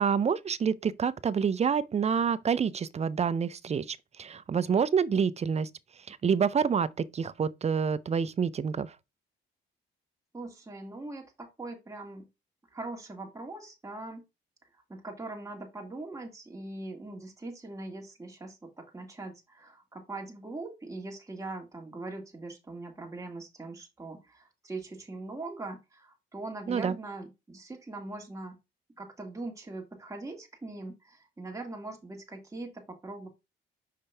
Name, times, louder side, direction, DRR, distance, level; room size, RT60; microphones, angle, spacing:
voice 1, 0.0-5.7 6.1-8.9 26.7-26.9, right 6 dB, 35° right, 0.5 m, -27 dB
voice 2, 10.3-12.3 12.7-14.2 14.9-28.6 29.0-33.3, right 2 dB, 15° right, 1.5 m, -41 dB
5.5 x 5.1 x 3.3 m
cardioid pair, 90°, 20 cm